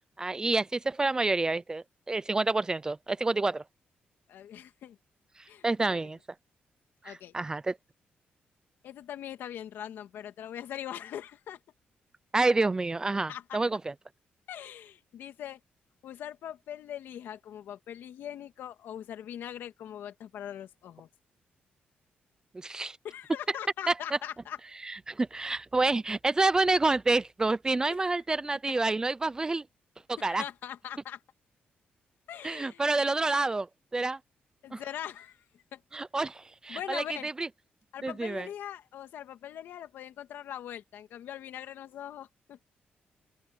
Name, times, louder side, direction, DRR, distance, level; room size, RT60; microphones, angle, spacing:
voice 1, 0.2-3.6 5.6-6.2 7.0-7.8 12.3-13.9 22.5-23.0 23.9-24.0 24.8-29.6 30.1-30.4 32.4-33.7 33.9-34.2 34.7-34.8 35.9-37.5 38.0-38.5, right 3 dB, 20° right, 0.6 m, -28 dB
voice 2, 4.3-5.0 5.5-6.0 7.0-7.3 8.8-11.6 13.3-13.6 14.5-15.6 16.0-21.1 23.0-24.6 28.7-28.8 30.2-31.2 32.3-32.8 34.6-35.8 36.7-37.3 37.9-42.6, left 10 dB, 85° left, 2.0 m, -41 dB
open air
cardioid pair, 110°, 3 cm